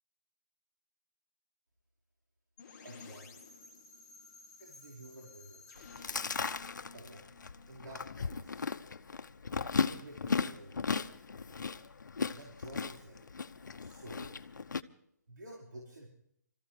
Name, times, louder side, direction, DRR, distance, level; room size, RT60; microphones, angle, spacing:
sound 1, 2.6-8.4, left 4 dB, 15° left, 1.6 m, -54 dB
voice 1, 2.8-3.5 4.6-5.7 6.9-7.3 7.7-8.6 9.7-10.9 12.3-13.3 13.8-14.3 15.3-16.1, right 1 dB, 90° right, -3 dB, 5.1 m, -50 dB
Chewing mastication, 5.8-14.8, left 5 dB, 85° left, 0.9 m, -36 dB
26.5 x 14.5 x 3.4 m, 0.70 s
hypercardioid pair, 170°, 10 cm